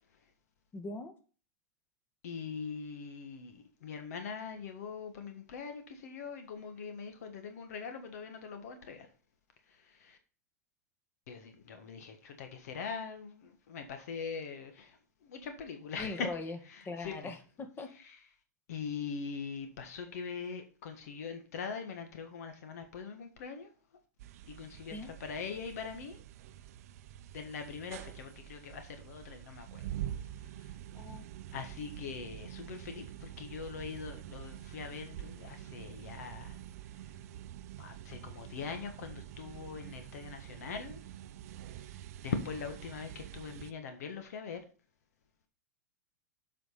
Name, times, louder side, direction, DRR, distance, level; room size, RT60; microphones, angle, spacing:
voice 1, 0.7-1.1 15.9-16.6 16.8-17.9 24.9-25.1 30.9-31.3, left 3 dB, 20° left, 1.7 m, -40 dB
voice 2, 2.2-9.1 9.7-10.2 11.3-16.3 16.7-17.3 18.0-18.2 18.7-23.7 24.5-26.2 27.3-29.8 30.6-30.7 31.5-36.6 37.8-41.0 41.7-41.9 42.2-44.6, left 5 dB, 60° left, 1.4 m, -42 dB
sound 1, 24.2-43.7, right 12 dB, 60° right, 0.6 m, -46 dB
7.8 x 5.1 x 5.5 m
figure-of-eight pair, 95°, 9 cm